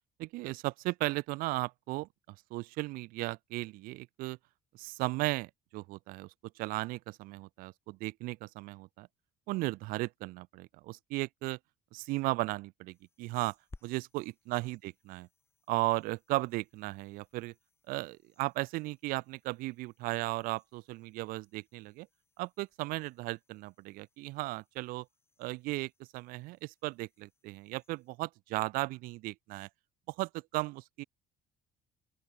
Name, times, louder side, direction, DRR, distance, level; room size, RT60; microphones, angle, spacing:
voice 1, 0.2-4.4 4.7-9.1 9.5-11.6 11.9-13.6 13.8-15.3 15.7-17.5 17.9-22.1 22.4-25.1 25.4-29.7 30.1-31.0, right 21 dB, 80° right, 0.5 m, -36 dB
sound 1, 12.9-28.1, left 3 dB, 15° left, 5.9 m, -63 dB
open air
cardioid pair, 110°, 15 cm